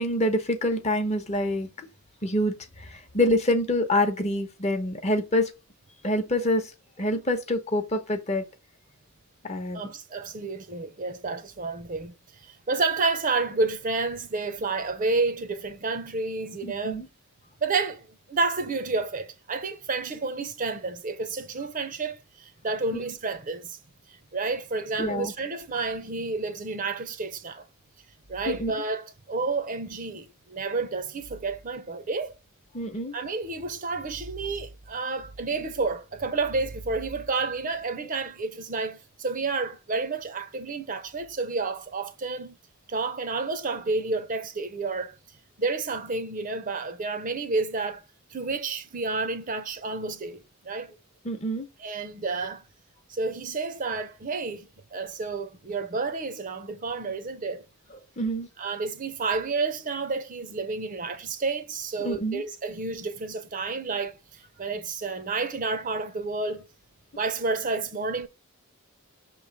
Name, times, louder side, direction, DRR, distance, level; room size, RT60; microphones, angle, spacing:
voice 1, 0.0-1.9 2.2-5.5 6.0-6.7 7.0-8.4 9.4-9.9 16.6-17.1 22.9-23.0 25.0-25.3 28.5-28.7 32.7-33.2 51.2-51.7 58.2-58.5 62.0-62.4, left 1 dB, 30° left, 0.8 m, -26 dB
voice 2, 9.7-17.0 17.6-23.8 24.1-27.6 28.3-32.3 33.1-42.6 42.9-45.2 45.6-48.0 48.3-50.9 51.8-52.6 53.1-57.6 58.6-66.7 67.1-68.3, right 3 dB, 35° right, 0.6 m, -30 dB
6.1 x 3.1 x 5.1 m
head